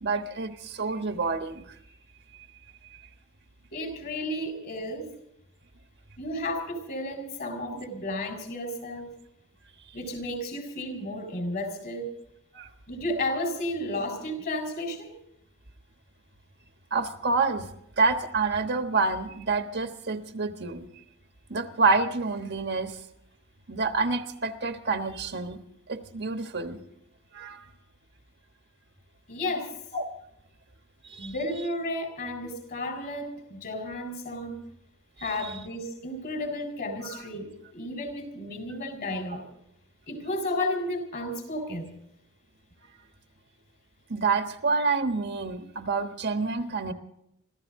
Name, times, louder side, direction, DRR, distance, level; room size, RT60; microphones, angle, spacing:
voice 1, 0.0-1.6 12.5-12.7 16.9-17.7 18.0-20.9 21.5-23.0 23.7-25.6 25.9-26.8 27.3-27.6 29.9-30.0 31.0-31.3 35.2-35.5 37.1-37.2 44.1-46.9, right 4 dB, 50° right, 7 dB, 1.3 m, -28 dB
voice 2, 3.7-5.1 6.2-9.1 9.9-12.1 12.9-15.1 29.3-29.8 31.2-34.6 35.2-39.5 40.1-41.9, left 1 dB, 45° left, 5 dB, 4.2 m, -33 dB
26.0 x 14.5 x 3.7 m, 0.76 s
head